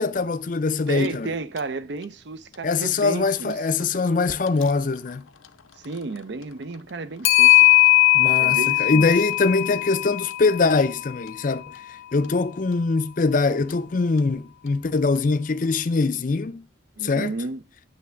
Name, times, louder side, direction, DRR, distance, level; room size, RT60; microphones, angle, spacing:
voice 1, 0.0-1.3 2.6-5.3 8.1-11.8 12.1-16.7 17.0-17.3, left 3 dB, 40° left, 0.4 m, -23 dB
voice 2, 0.9-3.6 5.8-7.7 8.4-9.1 17.0-17.6, right 3 dB, 60° right, 0.6 m, -32 dB
Clock, 1.0-1.1 1.6-1.7 4.5-4.7 7.2-11.5, left 20 dB, 90° left, 0.6 m, -19 dB
9.7 x 3.4 x 6.9 m
head